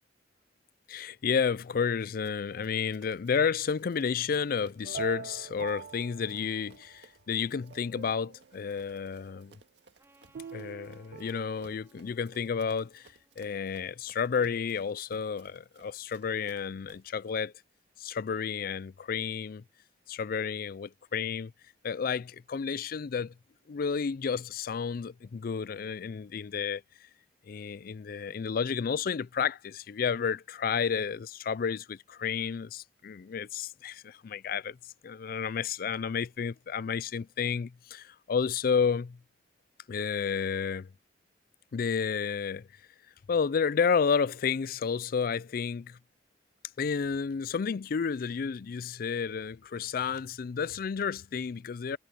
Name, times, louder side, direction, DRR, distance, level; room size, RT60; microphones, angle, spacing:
voice 1, 0.9-9.5 10.5-17.5 18.0-19.6 20.1-21.5 21.8-23.3 23.7-26.8 27.5-34.8 35.0-39.2 39.9-40.9 41.7-42.7 43.3-46.0 46.8-52.0, left 6 dB, 55° left, 0.4 m, -31 dB
Run, 2.2-17.2, right 4 dB, 80° right, 1.9 m, -61 dB
sound 1, 4.8-7.0 7.5-8.6 10.3-11.8, right 6 dB, 65° right, 0.3 m, -43 dB
Trumpet, 10.0-14.6, right 1 dB, 15° right, 3.9 m, -67 dB
head